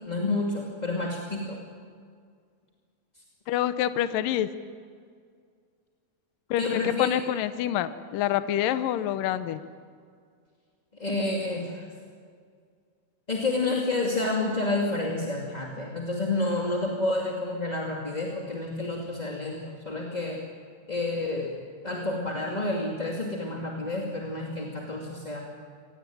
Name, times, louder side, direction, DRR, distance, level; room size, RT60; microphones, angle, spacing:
voice 1, 0.0-1.6 6.6-7.1 11.0-11.8 13.3-20.4 20.9-21.5 21.8-25.4, left 2 dB, 15° left, -1 dB, 1.8 m, -29 dB
voice 2, 3.5-4.5 6.5-9.6, left 12 dB, 75° left, 12 dB, 2.4 m, -27 dB
25.5 x 18.5 x 9.2 m, 2.1 s
omnidirectional pair, 4.2 m